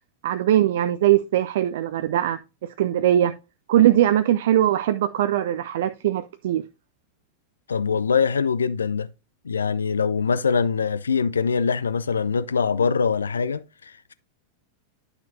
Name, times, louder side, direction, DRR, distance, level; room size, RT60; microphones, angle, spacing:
voice 1, 0.2-3.4 3.7-6.6, right 12 dB, 55° right, 0.4 m, -21 dB
voice 2, 7.7-9.1 9.4-14.1, left 5 dB, 70° left, 0.5 m, -23 dB
10.5 x 5.9 x 2.6 m
figure-of-eight pair, 90°, 0 cm